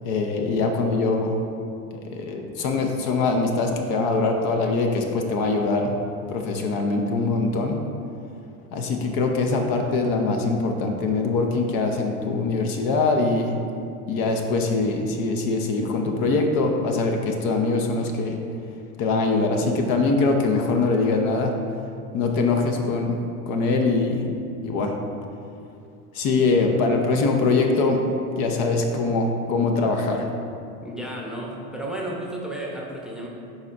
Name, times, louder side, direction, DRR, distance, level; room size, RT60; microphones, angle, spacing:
voice 1, 0.0-1.4 1.9-5.9 6.3-7.8 8.7-13.6 14.1-18.4 19.0-21.6 22.1-24.3 24.6-25.0 26.1-30.2, left 3 dB, 50° left, 3 dB, 0.9 m, -23 dB
voice 2, 30.8-33.3, right 1 dB, ahead, -3 dB, 0.8 m, -32 dB
10.5 x 4.2 x 2.5 m, 2.5 s
hypercardioid pair, 100°, 45 cm